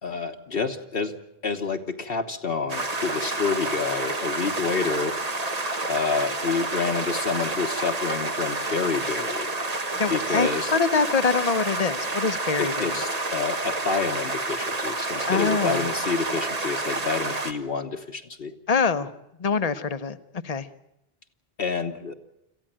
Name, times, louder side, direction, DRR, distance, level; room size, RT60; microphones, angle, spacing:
voice 1, 0.0-1.1 1.4-5.2 5.9-9.5 10.1-10.7 12.6-18.5 21.6-22.1, left 4 dB, 65° left, 4 dB, 1.4 m, -28 dB
sound 1, 2.7-17.5, right 2 dB, 40° right, 1.5 m, -29 dB
voice 2, 10.0-13.0 15.3-15.8 18.7-19.1 19.4-20.2 20.4-20.7, left 5 dB, 40° left, 12 dB, 1.0 m, -24 dB
26.5 x 15.0 x 8.8 m, 0.87 s
omnidirectional pair, 1.0 m